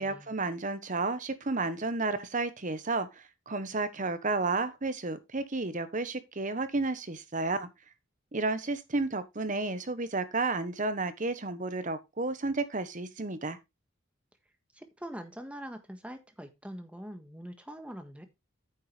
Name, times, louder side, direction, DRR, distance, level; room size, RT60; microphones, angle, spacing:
voice 1, 0.0-7.7 8.3-13.6, right 3 dB, 40° right, 1.1 m, -32 dB
voice 2, 14.7-18.3, equal, 5° right, 1.5 m, -43 dB
9.5 x 7.8 x 3.3 m
head